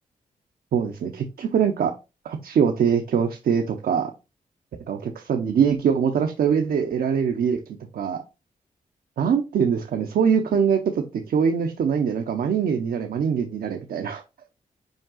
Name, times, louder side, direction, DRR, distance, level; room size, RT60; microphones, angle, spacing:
voice 1, 0.7-1.9 2.2-4.1 4.9-7.6 7.9-8.2 9.2-14.2, right 7 dB, 80° right, 5 dB, 0.7 m, -23 dB
5.2 x 4.8 x 3.8 m, 0.28 s
cardioid pair, 85°, 15 cm